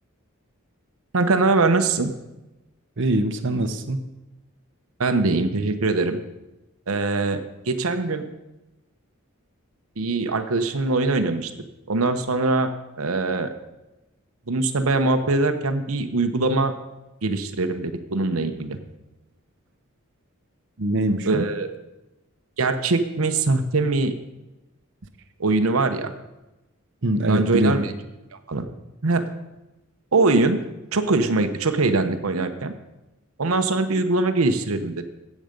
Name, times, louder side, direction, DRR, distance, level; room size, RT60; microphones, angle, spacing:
voice 1, 1.1-2.1 5.0-6.2 6.9-8.2 10.0-11.5 11.9-13.5 14.5-16.7 17.2-18.8 21.2-21.7 22.6-24.1 25.4-26.1 27.3-27.9 28.5-28.7 29.0-29.3 30.1-30.6 30.9-32.7 33.4-35.0, right 3 dB, 90° right, 8 dB, 0.9 m, -22 dB
voice 2, 3.0-4.0 20.8-21.5 27.0-27.8, right 1 dB, 60° right, 6 dB, 0.9 m, -23 dB
14.0 x 8.4 x 5.2 m, 1.0 s
head